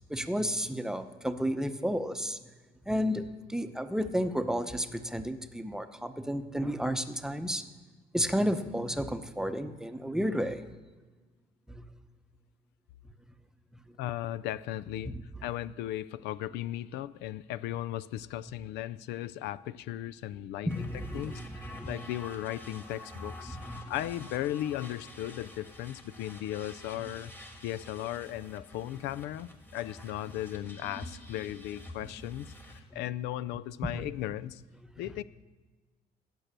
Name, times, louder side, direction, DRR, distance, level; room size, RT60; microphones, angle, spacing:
voice 1, 0.1-2.4 2.9-7.6 8.1-10.6 11.7-11.9 15.0-15.1 20.7-22.1 23.5-23.9 32.9-33.0 33.9-34.1, equal, 5° right, 9 dB, 0.7 m, -32 dB
voice 2, 14.0-15.1 15.4-20.9 21.1-23.6 23.9-27.3 27.6-34.6 35.0-35.2, left 13 dB, 85° left, 17 dB, 0.4 m, -36 dB
sound 1, 20.7-32.8, left 1 dB, 10° left, 1.6 m, -48 dB
16.5 x 6.1 x 6.7 m, 1.3 s
cardioid pair, 110°, 17 cm